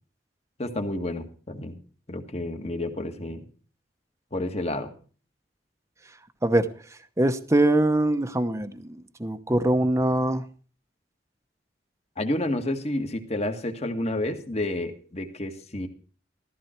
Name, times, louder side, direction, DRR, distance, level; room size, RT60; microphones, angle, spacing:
voice 1, 0.6-1.7 2.1-3.4 4.3-4.9 12.2-15.9, left 1 dB, 35° left, 6 dB, 1.9 m, -30 dB
voice 2, 7.2-10.4, right 1 dB, 15° right, 9 dB, 0.9 m, -23 dB
14.5 x 14.5 x 4.5 m, 0.39 s
head